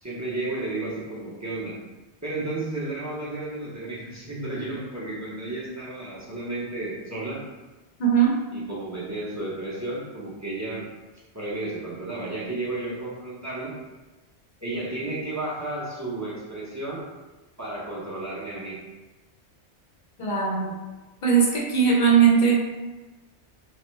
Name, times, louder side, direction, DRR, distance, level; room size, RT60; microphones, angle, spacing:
voice 1, 0.0-1.8 2.2-7.4 8.5-10.9 11.3-13.8 14.6-17.0 17.6-18.8, right 2 dB, 20° right, -7 dB, 0.6 m, -32 dB
voice 2, 8.0-8.3 20.2-20.8 21.2-22.5, right 7 dB, 55° left, -2 dB, 0.7 m, -19 dB
3.1 x 2.1 x 3.1 m, 1.2 s
omnidirectional pair, 1.1 m